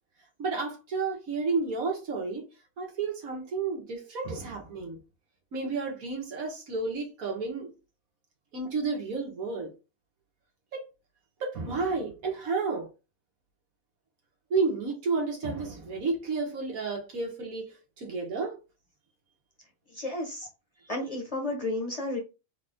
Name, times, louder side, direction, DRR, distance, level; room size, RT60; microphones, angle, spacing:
voice 1, 0.4-2.5 2.8-5.0 5.5-7.7 8.5-9.7 10.7-10.8 11.4-12.9 14.5-17.7 18.0-18.6, right 4 dB, 85° right, 1.7 m, -31 dB
voice 2, 19.9-20.5 20.9-22.2, left 2 dB, 30° left, 0.9 m, -32 dB
4.0 x 2.7 x 3.5 m
omnidirectional pair, 1.4 m